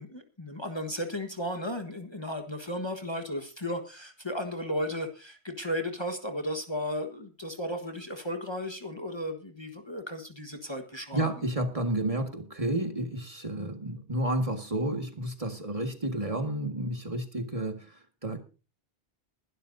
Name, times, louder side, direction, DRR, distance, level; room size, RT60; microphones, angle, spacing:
voice 1, 0.0-11.3, equal, 25° left, 5 dB, 1.5 m, -35 dB
voice 2, 11.1-18.4, right 1 dB, 30° right, 5 dB, 1.9 m, -31 dB
21.0 x 12.0 x 2.7 m, 0.32 s
omnidirectional pair, 1.1 m